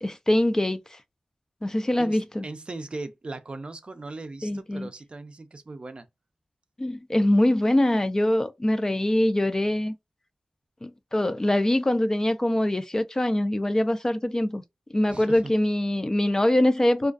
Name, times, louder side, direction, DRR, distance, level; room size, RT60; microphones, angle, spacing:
voice 1, 0.0-1.0 1.6-2.5 4.4-4.9 6.8-9.9 10.8-14.6 14.9-17.1, left 1 dB, 25° left, 0.3 m, -23 dB
voice 2, 2.0-6.1 15.1-15.5, right 2 dB, 45° right, 0.4 m, -39 dB
2.4 x 2.3 x 2.3 m
wide cardioid pair, 65°, 2 cm